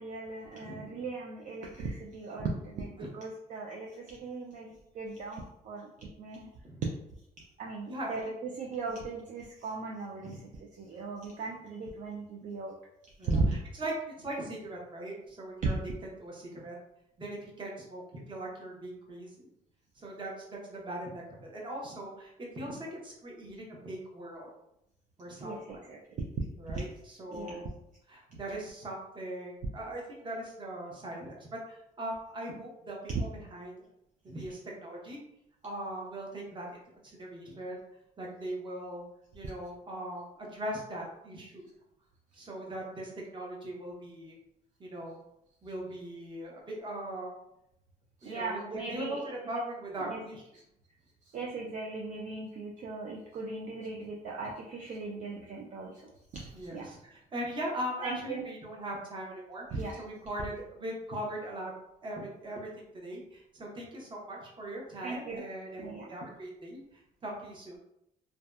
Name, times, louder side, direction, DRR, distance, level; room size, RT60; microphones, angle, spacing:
voice 1, 0.0-6.5 7.6-12.7 13.2-13.6 15.6-15.8 25.4-26.0 27.3-27.6 48.2-49.5 50.0-50.2 51.3-56.9 58.0-58.4 59.7-60.0 65.0-65.4 65.8-66.1, right 3 dB, 50° right, -1 dB, 0.4 m, -37 dB
voice 2, 7.8-8.2 10.2-10.4 13.2-15.8 16.2-16.8 17.2-19.5 20.0-24.5 25.2-25.8 26.6-27.7 28.1-33.7 34.2-35.2 35.6-36.7 37.0-37.8 38.2-39.0 39.3-41.7 42.3-44.4 44.8-45.2 45.6-47.3 48.2-50.4 56.5-61.7 62.0-67.8, right 1 dB, 30° right, -2 dB, 0.8 m, -40 dB
2.6 x 2.2 x 2.3 m, 0.81 s
cardioid pair, 110°, 17 cm